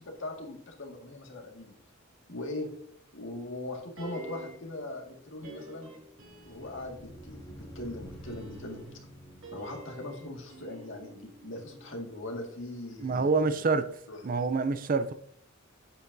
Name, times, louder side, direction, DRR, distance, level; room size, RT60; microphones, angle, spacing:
voice 1, 0.0-1.7 2.3-2.7 3.1-5.9 6.5-8.8 9.5-13.5 14.1-14.2, left 2 dB, 60° left, 1.9 m, -40 dB
sound 1, 4.0-4.8 5.4-7.1 8.1-12.3 12.6-12.7, right 2 dB, 90° right, 3.2 m, -48 dB
sound 2, 6.2-10.8, right 1 dB, 20° left, 2.5 m, -49 dB
voice 2, 13.0-13.9 14.2-15.1, right 4 dB, 40° right, 0.4 m, -26 dB
8.6 x 8.2 x 2.7 m
head